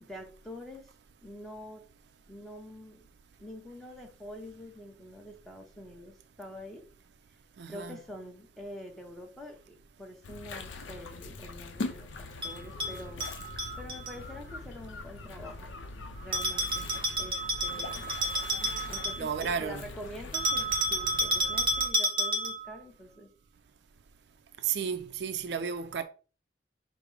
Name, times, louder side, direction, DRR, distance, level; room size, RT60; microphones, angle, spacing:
voice 1, 0.0-0.9 1.2-1.8 2.3-3.1 3.4-6.8 7.7-13.3 13.8-15.7 16.2-16.9 17.2-18.1 18.9-23.3, equal, ahead, 0.8 m, -46 dB
voice 2, 7.6-8.0 19.2-19.8 24.6-26.0, right 7 dB, 65° right, 0.4 m, -32 dB
sound 1, 10.2-21.9, left 3 dB, 85° left, 0.5 m, -42 dB
Bell, 12.4-14.1 16.3-19.6 20.3-22.7, right 1 dB, 25° right, 0.9 m, -30 dB
4.9 x 2.0 x 4.7 m
head